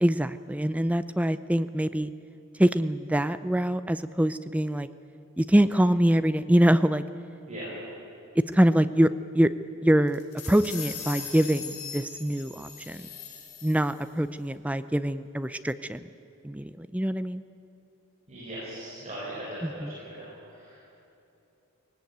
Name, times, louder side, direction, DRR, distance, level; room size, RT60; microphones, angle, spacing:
voice 1, 0.0-2.1 2.6-4.9 5.4-7.0 8.5-9.1 9.3-9.5 9.8-10.2 10.5-13.0 13.6-16.0 16.4-17.4 19.6-19.9, right 1 dB, 5° right, 12 dB, 0.5 m, -24 dB
sound 1, 10.1-14.1, left 7 dB, 70° left, 4.2 m, -40 dB
voice 2, 18.3-20.9, right 1 dB, 30° right, -8 dB, 6.7 m, -39 dB
19.0 x 18.0 x 9.3 m, 2.8 s
head